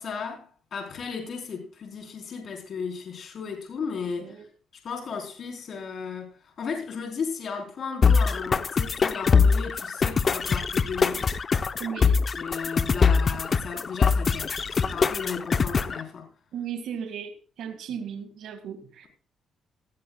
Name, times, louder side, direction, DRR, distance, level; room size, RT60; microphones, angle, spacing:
voice 1, 0.0-4.5 4.8-11.3 12.4-16.3, left 5 dB, 55° left, 4.1 m, -35 dB
voice 2, 4.2-4.5 11.8-12.2 16.5-19.1, right 8 dB, 75° right, 2.1 m, -36 dB
sound 1, 8.0-16.0, left 5 dB, 40° left, 0.8 m, -23 dB
18.5 x 14.5 x 2.4 m
cardioid pair, 90°, 0 cm